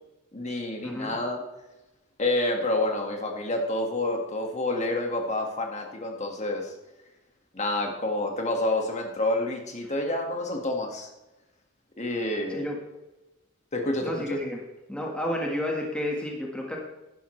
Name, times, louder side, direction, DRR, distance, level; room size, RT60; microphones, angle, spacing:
voice 1, 0.3-1.4 2.2-6.7 7.5-11.1 12.0-12.6 13.7-14.1, left 2 dB, 35° left, 2 dB, 1.8 m, -28 dB
voice 2, 14.0-14.6 14.9-16.8, left 1 dB, 5° left, -1 dB, 1.6 m, -31 dB
11.5 x 11.0 x 3.3 m, 1.0 s
head